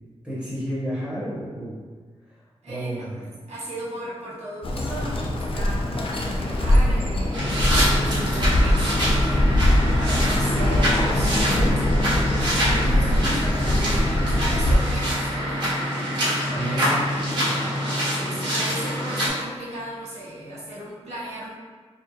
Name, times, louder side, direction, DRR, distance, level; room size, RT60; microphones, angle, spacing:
voice 1, 0.2-1.8 2.3-2.4 2.7-3.1 16.5-17.6, right 1 dB, 10° right, -9 dB, 1.3 m, -31 dB
voice 2, 2.6-11.8 12.2-15.6 16.5-17.1 18.1-21.5, right 1 dB, 70° right, -9 dB, 1.2 m, -36 dB
Bird, 4.6-14.8, left 1 dB, 55° left, 0.4 m, -22 dB
sound 1, 7.3-19.3, equal, 40° right, 1.3 m, -25 dB
4.3 x 2.0 x 3.2 m, 1.5 s
wide cardioid pair, 145°, 11 cm